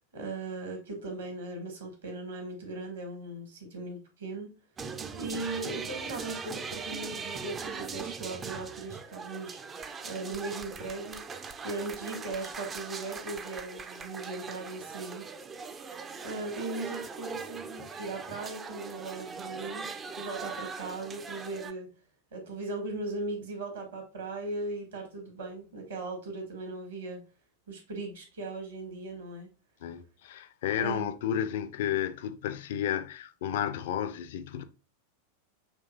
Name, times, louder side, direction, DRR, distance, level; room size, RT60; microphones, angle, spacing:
voice 1, 0.1-4.5 5.1-9.7 10.0-11.2 11.6-15.3 16.2-19.9 20.2-21.9 22.3-27.2 27.7-29.5 30.8-31.1, right 2 dB, 70° right, 1.7 m, -38 dB
sound 1, 4.8-21.7, right 5 dB, 20° right, 0.5 m, -40 dB
voice 2, 29.8-34.6, left 9 dB, 55° left, 0.5 m, -32 dB
6.1 x 2.9 x 2.7 m
figure-of-eight pair, 90°, 0 cm